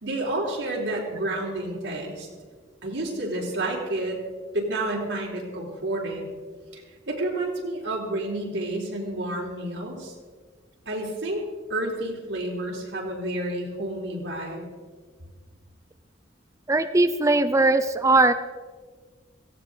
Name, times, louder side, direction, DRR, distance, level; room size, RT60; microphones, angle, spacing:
voice 1, 0.0-2.3 2.8-4.2 4.5-6.3 6.7-10.1 10.9-14.6, right 1 dB, 90° right, -2 dB, 3.8 m, -30 dB
voice 2, 16.7-18.3, right 2 dB, 15° right, 10 dB, 0.5 m, -20 dB
17.5 x 16.0 x 4.0 m, 1.5 s
head